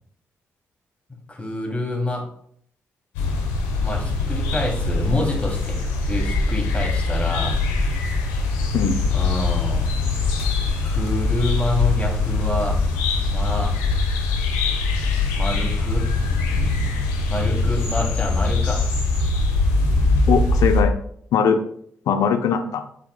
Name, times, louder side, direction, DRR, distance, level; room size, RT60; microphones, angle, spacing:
voice 1, 1.3-2.2 3.8-7.6 9.1-9.9 10.8-12.8 13.2-13.8 15.4-16.1 17.3-19.0, left 1 dB, 20° left, -1 dB, 2.8 m, -27 dB
sound 1, 3.1-20.8, left 3 dB, 90° left, 1.0 m, -22 dB
voice 2, 8.7-9.1 20.3-20.9 21.3-21.6 22.1-22.8, left 6 dB, 70° left, 8 dB, 0.7 m, -20 dB
8.6 x 5.6 x 2.3 m, 0.63 s
hypercardioid pair, 45°, 6 cm